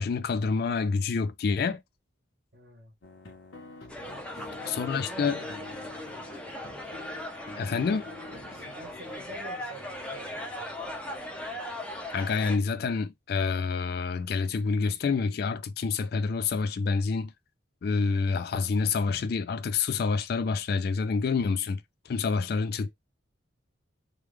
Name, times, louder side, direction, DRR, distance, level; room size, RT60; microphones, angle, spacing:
voice 1, 0.0-1.8 4.7-5.4 7.6-8.1 12.1-17.3 17.8-21.8 22.1-22.9, left 5 dB, 55° left, 0.3 m, -27 dB
voice 2, 2.5-2.9 4.0-6.3 8.5-10.8 22.8-22.9, right 1 dB, 50° right, 1.3 m, -48 dB
sound 1, 3.0-9.4, left 3 dB, 85° left, 1.0 m, -46 dB
sound 2, 3.9-12.6, left 1 dB, 5° left, 0.6 m, -39 dB
3.2 x 2.3 x 3.2 m
head